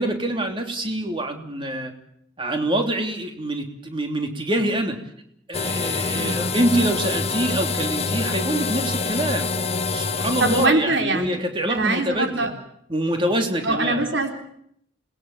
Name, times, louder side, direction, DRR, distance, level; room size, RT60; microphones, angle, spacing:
voice 1, 0.0-1.9 2.4-5.0 5.5-9.5 9.9-12.5 12.9-14.0, right 1 dB, 25° right, 4 dB, 3.1 m, -25 dB
sound 1, 5.5-10.7, left 4 dB, 35° left, 1.3 m, -25 dB
voice 2, 10.4-11.4 11.7-12.5 13.6-14.3, right 2 dB, 75° right, 4 dB, 3.7 m, -22 dB
28.0 x 20.0 x 7.3 m, 0.71 s
head